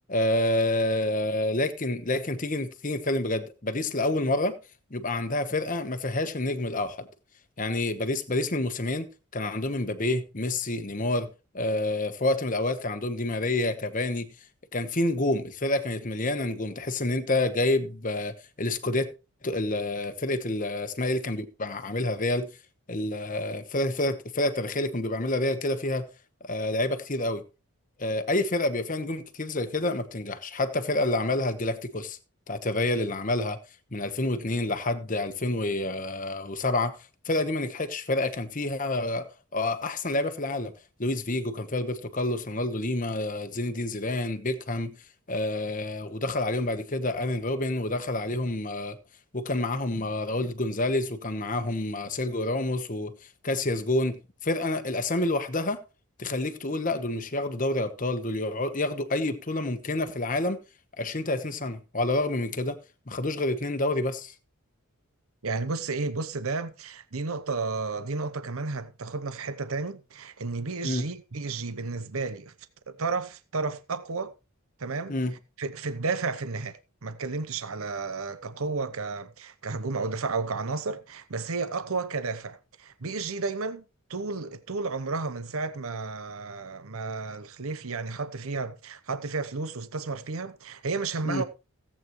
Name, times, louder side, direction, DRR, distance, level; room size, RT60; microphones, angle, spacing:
voice 1, 0.1-4.6 4.9-7.1 7.6-11.3 11.5-14.3 14.7-19.1 19.4-22.5 22.9-26.1 26.4-27.4 28.0-32.2 32.5-33.6 33.9-37.0 37.2-40.7 41.0-45.0 45.3-49.0 49.3-53.1 53.4-55.8 56.2-60.6 61.0-62.8 63.1-64.3 70.8-71.1 75.1-75.3 91.2-91.4, left 2 dB, 35° left, 1.1 m, -28 dB
voice 2, 65.4-72.5 73.0-74.3 74.8-75.1 75.6-83.8 84.1-91.4, right 4 dB, 70° right, 0.9 m, -32 dB
17.0 x 8.5 x 3.1 m
head